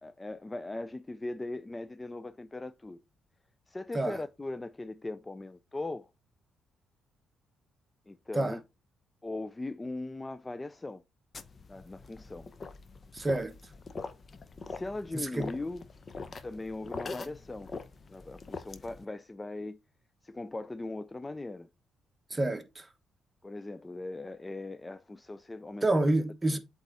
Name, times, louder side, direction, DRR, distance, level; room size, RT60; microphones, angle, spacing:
voice 1, 0.0-3.0 3.7-6.1 8.1-8.6 9.2-11.0 11.7-12.5 14.7-15.8 16.4-17.7 18.1-19.8 20.2-21.7 22.3-22.4 23.4-25.9 26.5-26.6, left 2 dB, 20° left, 0.3 m, -39 dB
sound 1, 11.3-19.0, left 4 dB, 40° left, 0.7 m, -43 dB
voice 2, 13.1-13.6 15.1-15.5 22.3-22.9 25.8-26.6, right 2 dB, 20° right, 1.1 m, -28 dB
8.0 x 3.6 x 4.0 m
cardioid pair, 90°, 0 cm